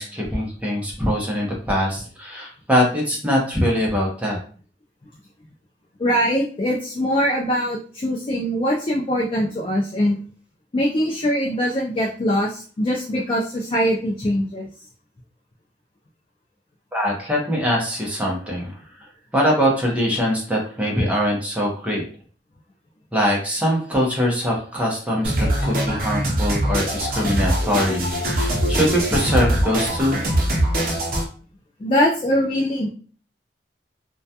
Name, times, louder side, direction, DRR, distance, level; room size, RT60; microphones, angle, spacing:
voice 1, 0.0-4.4 16.9-18.8 19.3-22.0 23.1-30.2, equal, 10° right, -2 dB, 0.6 m, -22 dB
voice 2, 6.0-10.2 10.7-14.7 31.8-32.9, equal, 30° left, -2 dB, 0.3 m, -22 dB
sound 1, 25.2-31.2, right 1 dB, 55° right, 0.6 m, -22 dB
2.2 x 2.2 x 2.7 m, 0.42 s
head